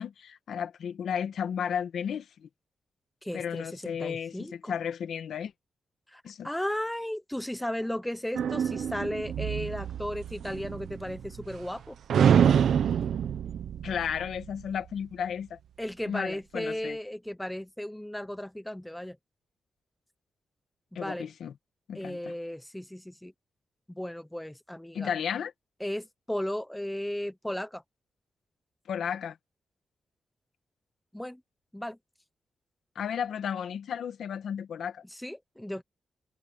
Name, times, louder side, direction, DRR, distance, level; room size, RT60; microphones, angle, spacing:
voice 1, 0.0-2.5 3.3-5.5 6.2-6.5 13.8-15.6 16.1-17.0 21.0-21.5 21.9-22.3 24.9-25.5 28.9-29.4 33.0-35.0, left 8 dB, 70° left, 1.9 m, -33 dB
voice 2, 3.2-4.7 6.1-12.0 15.8-19.2 20.9-21.3 21.9-23.3 23.9-25.1 25.8-27.8 31.1-31.4 31.7-32.0 35.1-35.8, left 1 dB, 5° left, 0.8 m, -35 dB
sound 1, 8.3-11.8 12.1-14.8, right 8 dB, 70° right, 0.8 m, -27 dB
wide cardioid pair, 175°, 0 cm